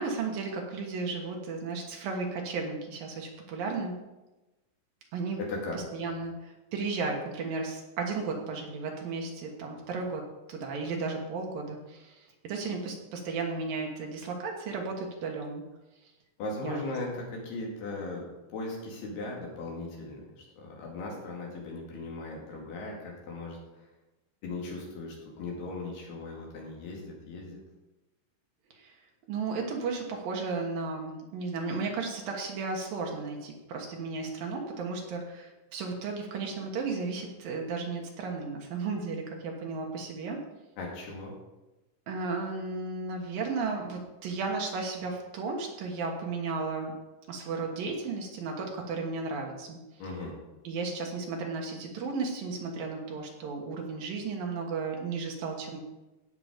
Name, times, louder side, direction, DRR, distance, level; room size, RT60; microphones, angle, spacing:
voice 1, 0.0-3.9 5.1-5.4 5.9-10.2 10.5-15.6 16.6-16.9 28.7-29.0 29.3-40.4 42.1-46.9 47.3-49.8 50.6-55.8, right 4 dB, 65° right, 1 dB, 2.4 m, -34 dB
voice 2, 5.4-5.8 16.4-23.8 24.4-27.6 40.8-41.3 50.0-50.4, left 2 dB, 60° left, -2 dB, 4.0 m, -38 dB
17.0 x 5.8 x 5.1 m, 1.1 s
omnidirectional pair, 5.6 m